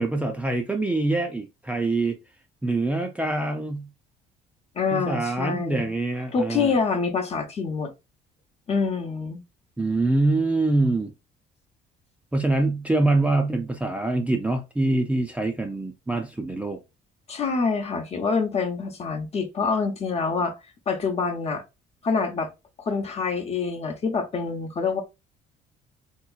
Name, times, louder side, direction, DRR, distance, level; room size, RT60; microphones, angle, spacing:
voice 1, 0.0-2.2 2.6-3.9 4.9-6.8 9.8-11.1 12.3-16.8, right 2 dB, 10° right, 0.4 m, -24 dB
voice 2, 4.7-5.9 6.3-7.9 8.7-9.4 17.3-20.6 20.9-21.6 22.0-22.5 22.8-25.0, left 5 dB, 40° left, 0.9 m, -26 dB
3.6 x 2.9 x 2.4 m
cardioid pair, 110°, 17 cm